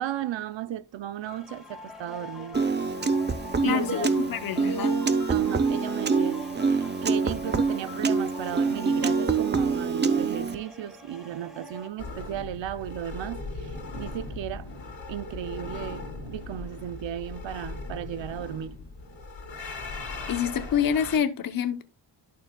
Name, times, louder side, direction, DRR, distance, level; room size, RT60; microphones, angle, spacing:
voice 1, 0.0-2.6 3.6-4.1 5.3-14.8 15.1-18.8, right 11 dB, 80° right, 0.6 m, -35 dB
sound 1, 1.2-11.9, left 2 dB, ahead, 1.7 m, -43 dB
Piano, 2.5-10.6, right 4 dB, 25° right, 0.5 m, -25 dB
voice 2, 3.6-5.1 20.3-21.8, left 8 dB, 50° left, 0.7 m, -27 dB
sound 2, 12.0-21.2, left 3 dB, 85° left, 2.7 m, -38 dB
11.5 x 6.4 x 2.2 m
wide cardioid pair, 125°, 44 cm